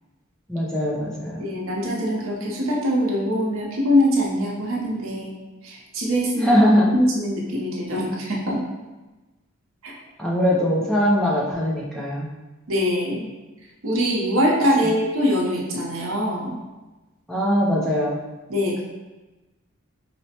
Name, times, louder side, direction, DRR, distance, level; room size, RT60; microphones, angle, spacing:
voice 1, 0.5-1.4 6.4-6.9 10.2-12.3 17.3-18.2, equal, 5° left, -5 dB, 0.4 m, -21 dB
voice 2, 1.4-5.4 5.6-6.5 6.9-8.6 9.8-9.9 12.7-13.3 13.8-16.6 18.5-18.8, equal, 70° right, -2 dB, 0.7 m, -23 dB
4.2 x 2.0 x 2.8 m, 1.1 s
head